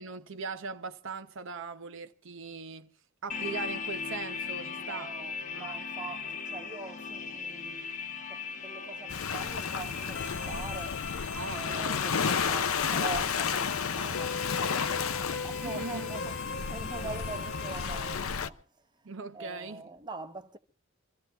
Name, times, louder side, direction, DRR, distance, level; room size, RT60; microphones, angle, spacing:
voice 1, 0.0-2.9 3.2-5.1 5.5-5.8 11.3-11.9 12.3-12.4 15.3-16.1 19.0-19.8, right 4 dB, 65° right, 0.8 m, -40 dB
sound 1, 3.3-17.8, left 5 dB, 40° left, 0.9 m, -40 dB
voice 2, 4.8-20.6, right 3 dB, 20° right, 0.9 m, -44 dB
Waves surf, 9.1-18.5, left 6 dB, 85° left, 0.7 m, -32 dB
sound 2, 10.1-18.1, left 4 dB, 60° left, 1.1 m, -40 dB
25.5 x 14.5 x 3.4 m
head